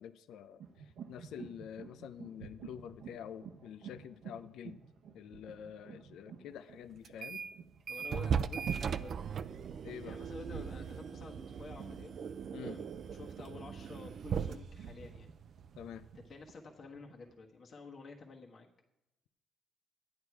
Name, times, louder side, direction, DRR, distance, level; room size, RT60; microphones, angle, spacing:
voice 1, 0.0-4.8 5.1-7.4 9.8-10.2 12.5-12.8 15.8-16.0, left 9 dB, 80° left, 12 dB, 0.5 m, -47 dB
sound 1, 0.6-17.3, right 6 dB, 75° right, 1.0 m, -52 dB
sound 2, 7.0-7.6 7.9-16.3, right 7 dB, 60° right, 0.5 m, -38 dB
voice 2, 7.9-9.4 10.0-12.2 12.6-15.3 16.2-18.7, left 3 dB, 50° left, -1 dB, 1.3 m, -50 dB
12.0 x 9.5 x 4.7 m, 0.92 s
cardioid pair, 90°, 0 cm